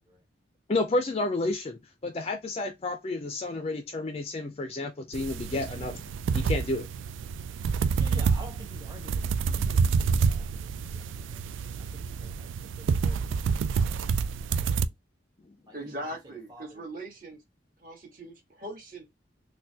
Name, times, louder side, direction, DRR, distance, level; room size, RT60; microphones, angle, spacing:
voice 1, 0.7-6.0 6.3-6.9, left 2 dB, 30° left, 0.3 m, -30 dB
sound 1, 5.1-14.9, right 5 dB, 85° right, 0.3 m, -28 dB
voice 2, 7.9-14.9 15.7-16.9, equal, 20° right, 0.9 m, -50 dB
voice 3, 15.7-17.4 17.8-19.0, right 1 dB, 45° right, 1.4 m, -40 dB
4.2 x 2.2 x 2.7 m
head